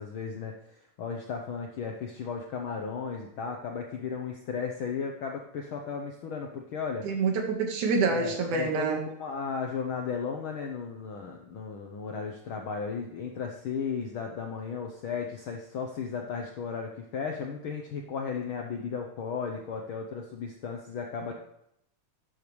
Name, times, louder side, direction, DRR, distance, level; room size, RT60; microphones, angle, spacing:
voice 1, 0.0-7.1 8.0-21.3, left 5 dB, 75° left, 2 dB, 1.2 m, -35 dB
voice 2, 7.0-9.0, right 4 dB, 85° right, 3 dB, 2.9 m, -27 dB
12.0 x 8.5 x 3.1 m, 0.76 s
omnidirectional pair, 3.4 m